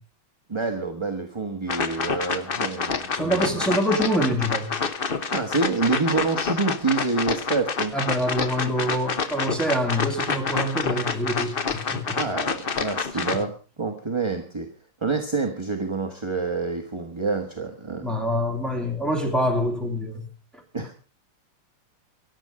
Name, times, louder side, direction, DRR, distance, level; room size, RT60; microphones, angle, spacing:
voice 1, 0.5-3.6 5.3-7.9 12.1-14.7 15.0-18.1 20.7-20.9, right 4 dB, 15° right, 1.1 m, -27 dB
sound 1, 1.7-13.4, left 5 dB, 50° left, 0.6 m, -28 dB
voice 2, 3.1-4.7 7.9-12.2 13.3-13.4 18.0-20.3, equal, ahead, 2.6 m, -25 dB
24.0 x 8.2 x 4.9 m
omnidirectional pair, 2.3 m